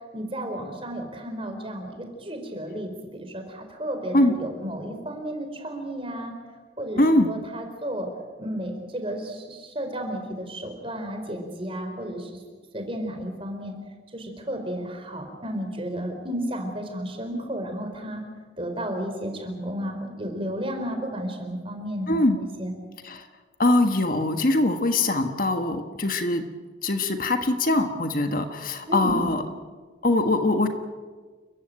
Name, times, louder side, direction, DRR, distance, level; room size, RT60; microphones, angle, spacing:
voice 1, 0.1-6.3 6.8-8.1 8.4-12.4 12.7-13.8 14.1-18.2 18.6-22.7 28.9-29.3, equal, 30° right, 4 dB, 4.2 m, -32 dB
voice 2, 7.0-7.3 22.1-22.4 23.0-23.2 23.6-26.4 26.8-29.4 30.0-30.7, left 2 dB, 45° left, 7 dB, 1.5 m, -22 dB
29.5 x 15.0 x 9.0 m, 1.5 s
head